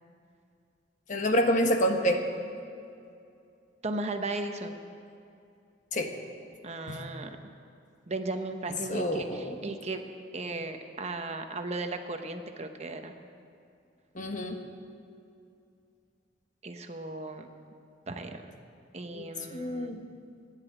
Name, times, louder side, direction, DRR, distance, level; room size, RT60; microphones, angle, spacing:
voice 1, 1.1-2.2 5.9-6.1 6.9-7.0 8.9-9.6 14.1-14.6 19.1-20.0, equal, 45° left, 4 dB, 1.3 m, -28 dB
voice 2, 3.8-4.8 6.6-7.4 8.1-10.0 10.3-13.1 16.6-17.5 18.1-18.4 18.9-20.0, right 2 dB, 35° right, 6 dB, 1.0 m, -36 dB
16.0 x 10.0 x 9.1 m, 2.5 s
head